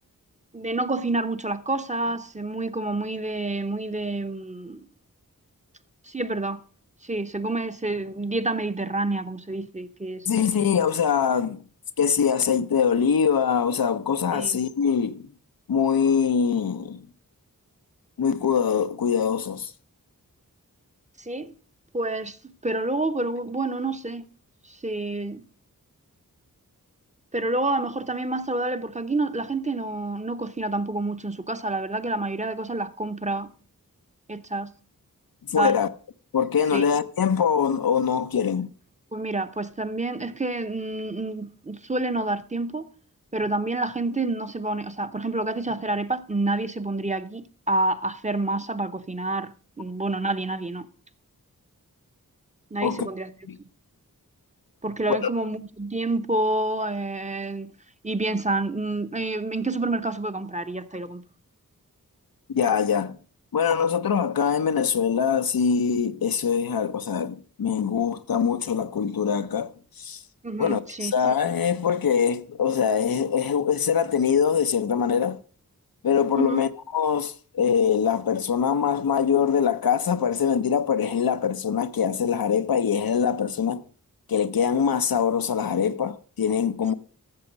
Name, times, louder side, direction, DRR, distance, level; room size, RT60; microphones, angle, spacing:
voice 1, 0.5-4.8 6.1-6.6 7.0-10.3 14.3-14.6 21.3-21.5 21.9-24.3 24.7-25.4 27.3-33.5 34.3-34.7 35.6-35.8 36.7-36.8 39.1-42.9 43.3-50.9 52.7-53.3 54.8-57.7 58.0-61.2 70.4-71.1 76.3-76.7, right 2 dB, 20° right, 0.8 m, -28 dB
voice 2, 10.3-11.6 12.0-15.3 15.7-17.0 18.2-19.7 35.5-35.9 36.3-38.7 52.8-53.1 53.5-53.6 55.1-55.3 62.5-63.2 63.5-70.2 70.6-75.4 76.0-83.8 84.3-86.9, left 7 dB, 85° left, 0.8 m, -23 dB
13.5 x 7.0 x 5.1 m
wide cardioid pair, 65°, 34 cm